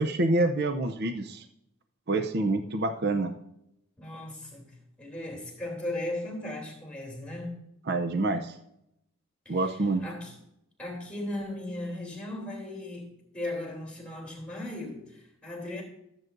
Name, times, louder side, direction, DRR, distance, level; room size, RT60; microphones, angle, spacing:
voice 1, 0.0-1.4 2.1-3.3 7.9-8.6 9.5-10.0, right 2 dB, 50° right, 0.6 m, -27 dB
voice 2, 4.0-7.6 9.4-9.6 10.0-10.3 10.8-15.8, left 1 dB, 5° left, 2.9 m, -37 dB
15.0 x 7.8 x 2.6 m
head